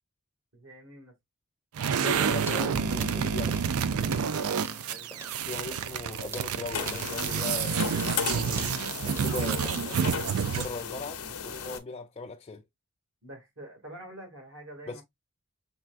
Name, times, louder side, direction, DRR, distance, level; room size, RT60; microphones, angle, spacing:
voice 1, 0.5-1.1 4.9-5.1 13.2-15.0, right 1 dB, 60° right, 2.1 m, -46 dB
sound 1, 1.7-10.8, right 7 dB, 80° right, 0.4 m, -29 dB
sound 2, 1.8-10.1, right 1 dB, 10° right, 0.8 m, -47 dB
voice 2, 2.0-3.6 5.5-8.7 9.2-10.2 10.5-12.6 14.9-15.0, left 3 dB, 25° left, 0.4 m, -39 dB
sound 3, 6.7-11.8, left 7 dB, 80° left, 0.8 m, -35 dB
6.0 x 3.4 x 2.4 m
head